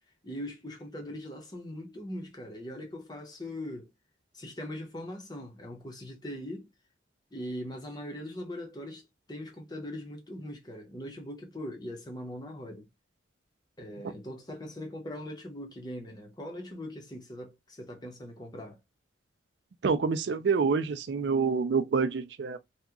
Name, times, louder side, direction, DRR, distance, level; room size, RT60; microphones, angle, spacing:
voice 1, 0.2-3.9 4.3-6.7 7.3-9.0 9.3-12.9 13.8-18.8, left 1 dB, 20° left, 0.9 m, -41 dB
voice 2, 19.8-22.6, right 5 dB, 60° right, 0.4 m, -27 dB
2.9 x 2.3 x 3.6 m
head